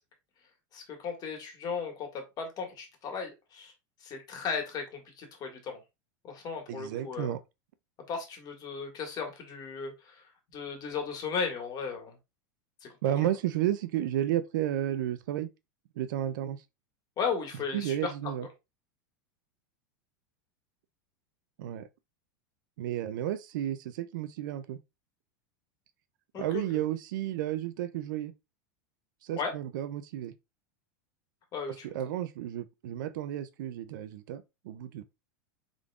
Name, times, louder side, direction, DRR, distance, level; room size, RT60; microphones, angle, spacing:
voice 1, 0.7-3.7 4.0-5.8 6.2-7.3 8.1-9.9 10.5-12.1 17.2-18.1 26.3-26.6 29.4-29.5 31.5-31.8, left 5 dB, 40° left, 1.7 m, -35 dB
voice 2, 6.7-7.4 13.0-15.5 16.0-16.6 17.7-18.5 21.6-21.9 22.8-24.8 26.4-28.3 29.2-30.3 31.8-35.0, right 12 dB, 75° right, 0.5 m, -32 dB
5.0 x 3.8 x 2.3 m
supercardioid pair, 115°, 11 cm